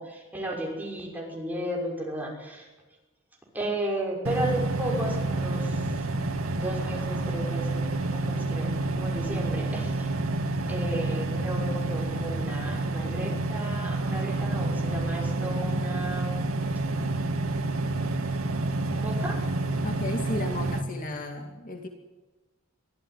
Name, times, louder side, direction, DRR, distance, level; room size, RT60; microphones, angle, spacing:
voice 1, 0.0-2.7 3.5-5.8 6.5-7.8 8.1-10.1 10.7-16.4 18.9-19.4, right 1 dB, 10° right, -1 dB, 6.2 m, -34 dB
sound 1, 4.2-20.8, right 2 dB, 85° right, 2.3 m, -29 dB
voice 2, 19.8-21.9, left 1 dB, 40° left, 4 dB, 2.4 m, -34 dB
24.0 x 15.5 x 9.8 m, 1.2 s
head